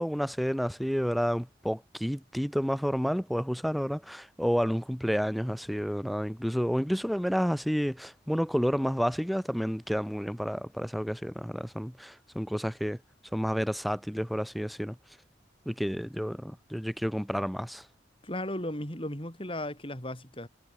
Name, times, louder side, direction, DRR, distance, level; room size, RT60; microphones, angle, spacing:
voice 1, 0.0-13.0 13.3-14.9 15.6-17.8, equal, ahead, 1.7 m, -30 dB
voice 2, 18.2-20.5, left 1 dB, 25° left, 4.3 m, -35 dB
head